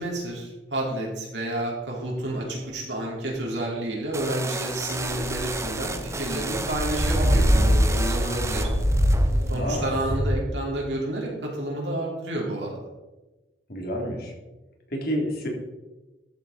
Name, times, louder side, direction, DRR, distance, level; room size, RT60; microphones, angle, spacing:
voice 1, 0.0-8.7 9.5-12.8, right 1 dB, 85° right, -3 dB, 4.8 m, -30 dB
sound 1, 4.1-9.6, right 3 dB, 15° right, 0.9 m, -33 dB
sound 2, 4.9-10.2, equal, 40° right, 4.7 m, -23 dB
voice 2, 9.5-9.9 13.7-14.3 14.9-15.5, equal, 60° left, 0 dB, 3.5 m, -29 dB
13.5 x 8.6 x 4.4 m, 1.1 s
head